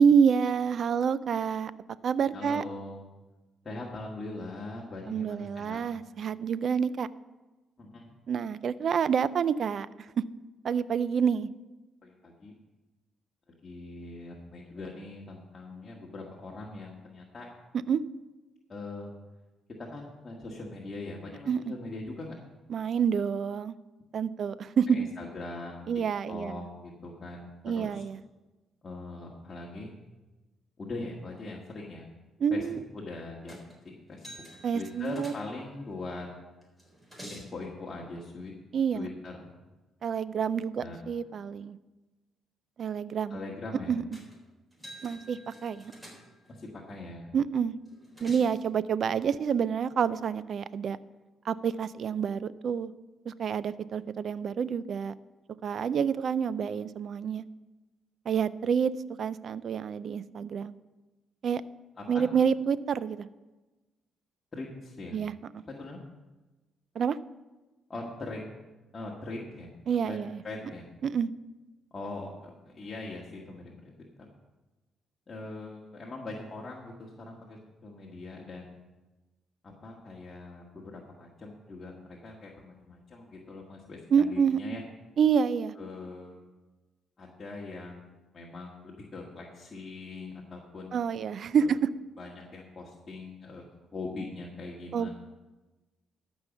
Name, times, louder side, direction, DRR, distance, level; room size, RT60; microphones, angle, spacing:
voice 1, 0.0-1.7 2.0-2.6 5.1-7.1 8.3-9.9 10.2-10.3 10.6-11.5 17.9-18.0 21.5-21.7 22.7-23.8 24.1-25.1 25.9-26.6 27.6-28.2 32.4-32.8 34.6-35.3 38.7-39.1 40.0-41.8 42.8-43.4 43.9-44.0 45.0-45.9 47.3-47.8 48.2-51.0 51.4-52.9 53.3-55.1 55.6-57.4 58.3-60.7 61.4-61.6 62.1-63.3 65.1-65.3 67.0-67.2 69.9-70.4 71.0-71.3 84.1-84.8 85.2-85.7 90.9-91.8 94.9-95.1, right 7 dB, 55° right, 17 dB, 0.4 m, -28 dB
voice 2, 2.3-3.0 3.6-5.8 7.8-8.1 12.0-12.5 13.6-17.5 18.7-19.1 19.8-22.4 24.9-25.9 26.3-28.0 28.8-29.9 30.8-32.1 32.5-33.6 33.8-34.3 34.7-36.3 37.3-38.5 38.9-39.5 40.8-41.0 43.3-44.0 46.5-47.3 62.0-62.3 64.5-65.2 65.7-66.0 67.9-68.4 68.9-69.7 70.1-70.8 71.9-73.9 75.3-78.7 79.6-84.8 85.7-86.5 87.2-88.0 88.3-91.0 91.6-91.7 92.2-93.6 93.9-95.1, left 2 dB, 30° left, -3 dB, 1.7 m, -41 dB
sound 1, 33.5-33.8 34.2-35.8 36.6-37.5 44.1-44.4 44.7-46.6 47.9-48.6, equal, 10° right, 4.3 m, -48 dB
13.0 x 5.3 x 7.2 m, 1.1 s
cardioid pair, 90°, 0 cm